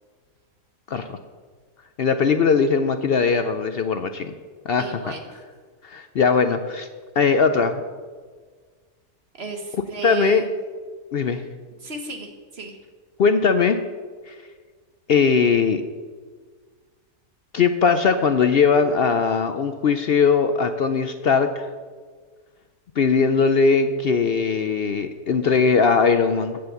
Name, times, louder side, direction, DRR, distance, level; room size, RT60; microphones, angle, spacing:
voice 1, 0.9-1.2 2.0-4.3 4.7-5.0 5.8-6.9 7.2-7.8 10.0-10.5 11.1-11.5 13.2-13.8 14.3-14.4 15.1-15.8 17.5-21.7 23.0-26.6, left 5 dB, 65° left, 9 dB, 0.6 m, -20 dB
voice 2, 4.8-5.4 9.4-10.5 11.8-12.8, right 3 dB, 45° right, 4 dB, 1.4 m, -33 dB
15.5 x 5.3 x 6.9 m, 1.5 s
omnidirectional pair, 1.6 m